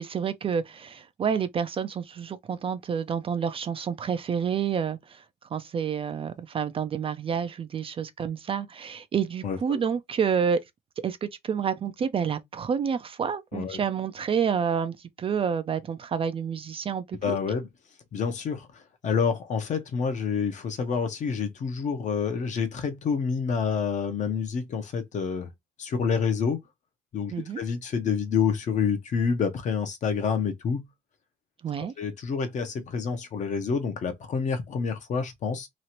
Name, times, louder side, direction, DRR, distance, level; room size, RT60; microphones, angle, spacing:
voice 1, 0.0-5.2 5.5-10.6 11.0-17.4 27.3-27.6 31.6-31.9, right 7 dB, 35° right, 0.4 m, -29 dB
voice 2, 9.4-9.8 13.5-13.8 17.2-17.7 18.1-25.5 25.8-26.6 27.1-30.9 31.8-35.7, left 6 dB, 45° left, 0.8 m, -28 dB
3.0 x 2.4 x 2.8 m
cardioid pair, 110°, 17 cm